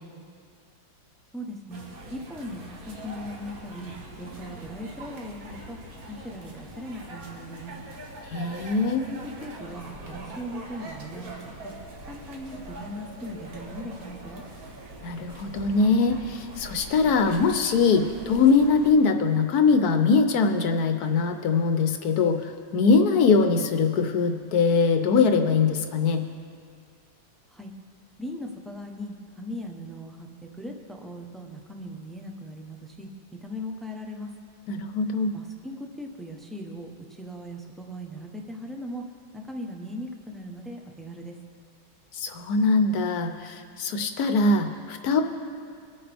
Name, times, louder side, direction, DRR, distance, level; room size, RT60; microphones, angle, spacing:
voice 1, 1.3-5.8 6.1-7.7 8.8-11.3 11.6-11.7 12.1-14.4 27.5-27.7 28.2-30.7 31.0-33.1 33.4-34.3 35.3-39.0 39.3-41.4, equal, ahead, 2 dB, 0.4 m, -39 dB
sound 1, 1.7-18.9, right 1 dB, 55° right, 1.7 m, -42 dB
voice 2, 8.3-9.0 15.0-26.2 34.7-35.3 42.2-45.2, left 4 dB, 65° left, 7 dB, 1.2 m, -22 dB
23.0 x 8.8 x 3.5 m, 2.3 s
omnidirectional pair, 1.9 m